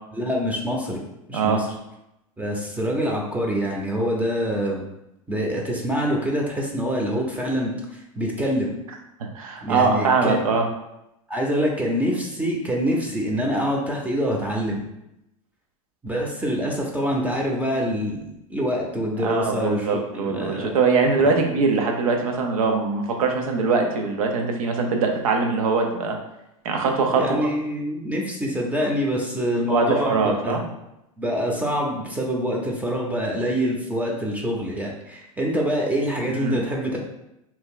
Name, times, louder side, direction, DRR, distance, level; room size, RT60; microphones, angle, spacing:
voice 1, 0.1-1.0 1.3-1.7 2.4-4.8 5.3-8.7 9.6-10.4 11.3-14.8 16.0-20.7 21.2-21.3 27.1-30.6 31.2-37.0, equal, 10° right, -1 dB, 0.6 m, -25 dB
voice 2, 1.3-1.6 9.3-10.7 19.2-26.2 26.6-27.5 29.7-30.6 36.4-36.6, right 4 dB, 80° right, 3 dB, 0.7 m, -22 dB
2.8 x 2.3 x 3.6 m, 0.87 s
hypercardioid pair, 105°, 18 cm